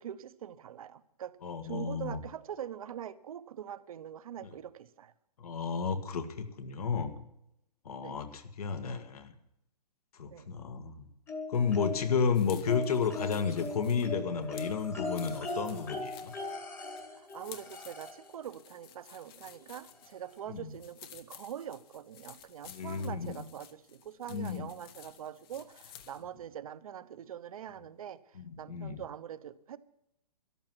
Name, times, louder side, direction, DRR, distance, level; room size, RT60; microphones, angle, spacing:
voice 1, 0.0-1.4 1.6-5.1 8.0-8.2 10.3-10.5 17.1-29.8, right 10 dB, 60° right, 14 dB, 0.9 m, -43 dB
voice 2, 1.4-2.2 4.4-4.5 5.4-7.1 7.9-9.3 10.2-11.1 11.5-16.3 20.5-20.7 22.7-23.4 24.3-24.6 28.4-29.0, left 6 dB, 65° left, 8 dB, 1.7 m, -32 dB
sound 1, 11.3-12.2 12.7-18.3 19.6-19.7 20.0-20.1, left 3 dB, 10° left, 1.4 m, -39 dB
sound 2, 12.3-26.3, left 10 dB, 35° left, 1.1 m, -54 dB
13.5 x 11.0 x 6.0 m, 0.83 s
hypercardioid pair, 150°, 21 cm